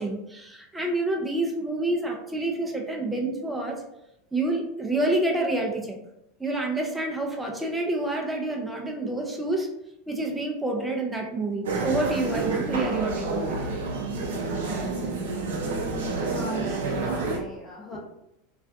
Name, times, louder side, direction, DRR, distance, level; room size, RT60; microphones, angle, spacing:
voice 1, 0.0-3.8 4.3-6.0 6.4-9.7 10.1-13.6, right 2 dB, 10° right, 1 dB, 0.5 m, -28 dB
sound 1, 11.6-17.4, right 3 dB, 70° right, 0.4 m, -29 dB
voice 2, 15.8-18.0, left 1 dB, 15° left, -3 dB, 0.8 m, -38 dB
2.4 x 2.1 x 2.6 m, 0.84 s
figure-of-eight pair, 80°, 0 cm